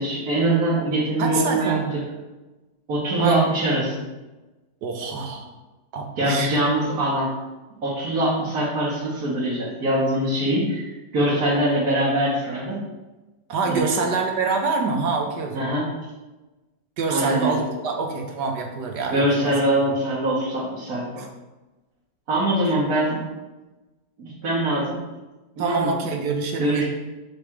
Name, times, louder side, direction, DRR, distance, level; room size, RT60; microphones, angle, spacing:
voice 1, 0.0-1.8 2.9-4.0 6.2-7.3 7.8-12.8 13.7-14.0 15.5-15.9 17.1-17.6 19.1-21.2 22.3-23.2 24.2-25.0 25.6-25.9 26.6-26.8, right 1 dB, 60° right, -8 dB, 1.9 m, -23 dB
voice 2, 1.2-1.9 3.2-3.4 4.8-5.5 5.9-6.6 13.5-15.6 17.0-19.6 21.2-21.3 25.6-26.8, right 4 dB, 75° right, 3 dB, 1.6 m, -25 dB
6.3 x 3.5 x 6.0 m, 1.1 s
omnidirectional pair, 1.9 m